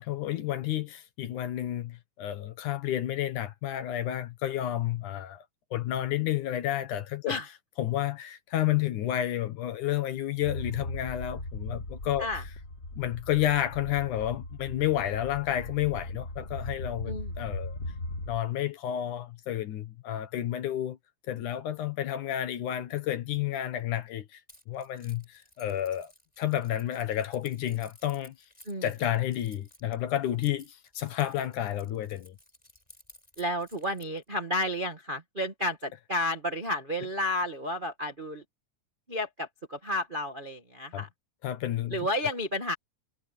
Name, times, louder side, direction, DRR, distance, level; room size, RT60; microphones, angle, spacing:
voice 1, 0.0-5.4 5.7-7.4 7.8-12.3 13.0-17.8 18.3-21.0 21.3-24.4 24.7-26.1 26.4-28.3 28.8-32.4 40.9-41.1 41.4-42.1, left 12 dB, 65° left, 2.5 m, -31 dB
sound 1, 10.4-18.4, left 1 dB, 35° left, 1.1 m, -39 dB
Keys jangling, 24.5-34.2, left 1 dB, 10° left, 7.8 m, -57 dB
voice 2, 33.4-38.4 39.1-41.1 41.9-42.7, left 1 dB, 35° right, 0.8 m, -31 dB
omnidirectional pair, 4.1 m